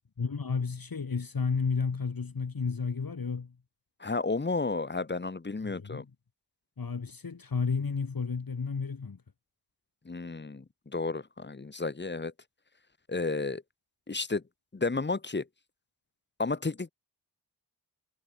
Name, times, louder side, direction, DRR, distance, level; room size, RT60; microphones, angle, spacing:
voice 1, 0.2-3.6 5.6-6.1 6.8-9.2, left 5 dB, 55° left, 2.0 m, -32 dB
voice 2, 4.0-6.0 10.0-10.6 10.9-12.3 13.1-13.6 14.1-14.4 14.7-15.5 16.4-16.9, left 3 dB, 25° left, 0.9 m, -32 dB
wide cardioid pair, 80°, 40 cm